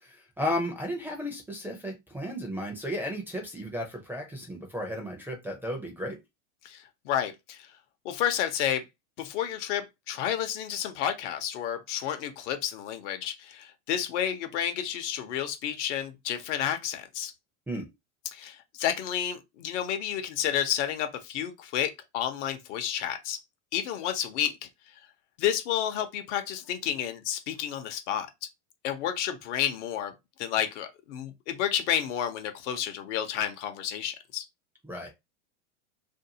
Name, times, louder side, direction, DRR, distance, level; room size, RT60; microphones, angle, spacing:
voice 1, 0.0-6.2 17.7-17.9 34.8-35.1, left 1 dB, 5° right, 0.5 m, -34 dB
voice 2, 6.6-7.7 8.0-8.8 9.2-17.3 18.3-23.4 23.7-24.5 25.4-28.3 28.8-30.1 30.4-34.5, left 10 dB, 60° left, 0.9 m, -30 dB
2.7 x 2.3 x 2.7 m
hypercardioid pair, 120°, 40 cm